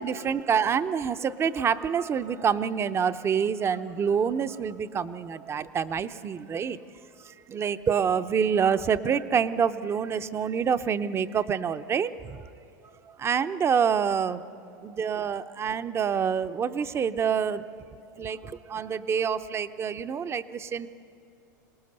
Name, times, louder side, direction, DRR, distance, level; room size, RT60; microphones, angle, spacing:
voice 1, 0.0-6.8 7.2-12.4 13.0-14.4 14.8-17.6 18.2-20.9, right 7 dB, 25° right, 12 dB, 0.7 m, -27 dB
26.5 x 18.5 x 6.7 m, 2.8 s
hypercardioid pair, 110°, 10 cm